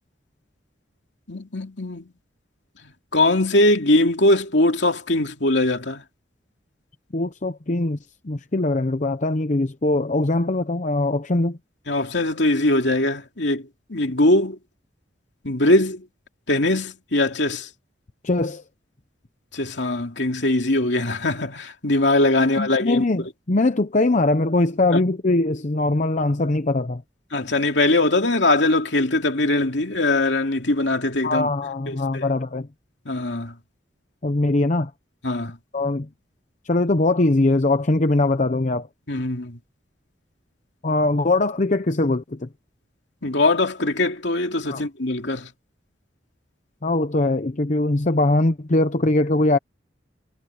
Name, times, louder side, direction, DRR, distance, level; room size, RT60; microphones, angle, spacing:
voice 1, 1.3-2.1 2.8-6.0 11.9-14.6 15.4-16.1 16.5-17.7 19.5-23.0 24.9-25.0 27.3-31.5 31.9-32.3 33.0-33.6 35.2-35.6 39.1-39.6 43.2-45.5, left 2 dB, 70° left, 2.8 m, -21 dB
voice 2, 7.1-8.0 8.2-11.6 18.2-18.6 22.6-27.0 31.2-32.7 34.2-34.9 35.7-36.1 36.7-38.9 40.8-42.5 44.7-44.8 46.8-49.6, left 2 dB, 40° left, 0.8 m, -21 dB
head